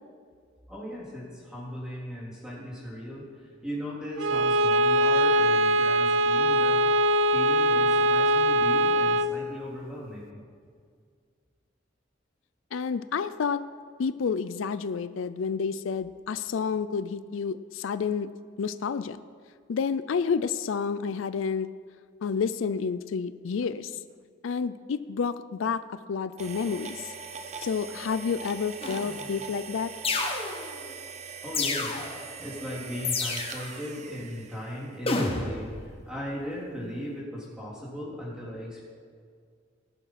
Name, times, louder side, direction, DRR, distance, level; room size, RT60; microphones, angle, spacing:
voice 1, 0.7-6.8 7.3-10.4 31.4-38.8, equal, 5° right, -7 dB, 3.6 m, -37 dB
Bowed string instrument, 4.2-9.4, right 1 dB, 75° right, 0.5 m, -22 dB
voice 2, 12.7-13.7 14.0-18.3 18.6-19.2 19.7-21.7 22.2-24.0 24.4-27.1 27.6-29.9, left 5 dB, 80° left, 13 dB, 0.4 m, -30 dB
sound 1, 26.4-35.3, right 5 dB, 35° right, 0.6 m, -41 dB
sound 2, 28.8-29.3 30.0-30.8 31.5-32.3 33.0-33.8 35.1-35.7, left 3 dB, 30° left, 1.3 m, -30 dB
19.0 x 6.7 x 5.8 m, 2.1 s
head